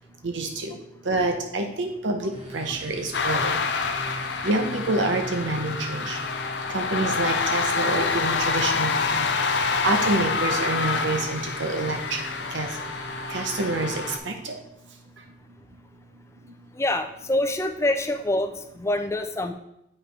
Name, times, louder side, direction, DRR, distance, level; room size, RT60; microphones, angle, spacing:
voice 1, 0.2-0.8 1.0-3.6 4.4-6.2 6.7-9.3 9.8-12.2 12.5-12.7 13.3-14.6, right 2 dB, 75° right, 4 dB, 0.9 m, -27 dB
sound 1, 2.3-14.2, right 1 dB, 30° right, 1.5 m, -41 dB
sound 2, 3.1-14.2, left 4 dB, 65° left, 0.6 m, -27 dB
voice 2, 16.8-19.5, left 1 dB, 15° left, 6 dB, 0.5 m, -26 dB
8.5 x 5.7 x 3.4 m, 0.80 s
head